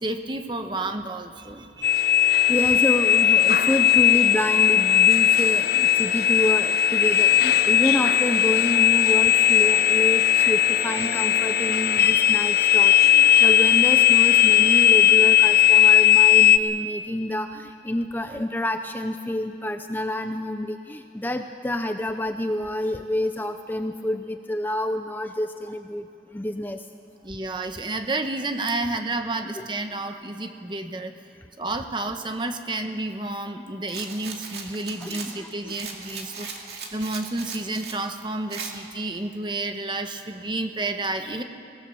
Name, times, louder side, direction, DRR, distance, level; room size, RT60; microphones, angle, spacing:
voice 1, 0.0-2.5 27.2-31.1 31.6-36.5 36.9-41.4, right 2 dB, 25° right, 7 dB, 1.1 m, -30 dB
sound 1, 1.8-16.6, left 11 dB, 55° left, 0.7 m, -18 dB
voice 2, 2.5-26.1 26.3-26.8 35.0-35.8, left 1 dB, 10° left, 7 dB, 0.5 m, -28 dB
Rattle, 33.9-38.0 38.5-38.7, right 5 dB, 70° right, 2.4 m, -37 dB
23.5 x 18.0 x 6.9 m, 2.4 s
head